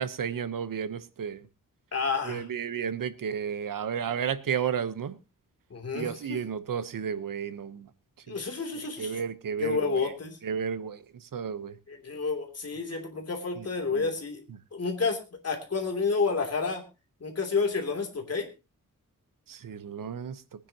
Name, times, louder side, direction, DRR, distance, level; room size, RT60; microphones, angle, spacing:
voice 1, 0.0-1.4 2.3-5.2 5.9-7.8 8.3-8.4 9.0-9.8 10.4-11.0 11.3-11.8 13.6-13.7 19.5-20.4, right 7 dB, 90° right, 1.0 m, -32 dB
voice 2, 1.9-2.5 5.7-6.5 8.3-9.2 9.6-10.4 11.9-14.4 14.7-16.8 17.2-18.5, left 4 dB, 50° left, 3.1 m, -30 dB
22.5 x 9.9 x 2.9 m
wide cardioid pair, 140°, 32 cm